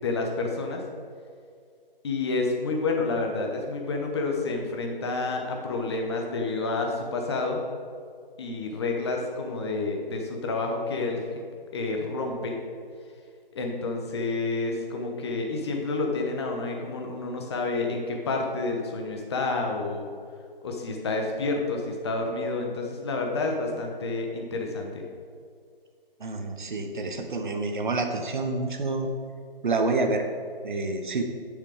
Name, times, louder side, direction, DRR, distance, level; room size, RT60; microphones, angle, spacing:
voice 1, 0.0-0.8 2.0-7.6 8.4-11.2 11.7-12.5 13.5-20.1 20.6-25.0, left 3 dB, 30° left, 2 dB, 1.0 m, -29 dB
voice 2, 26.2-29.1 29.6-30.2 30.6-31.3, right 3 dB, 55° right, 5 dB, 1.1 m, -28 dB
9.7 x 6.6 x 3.6 m, 2.2 s
figure-of-eight pair, 150°, 29 cm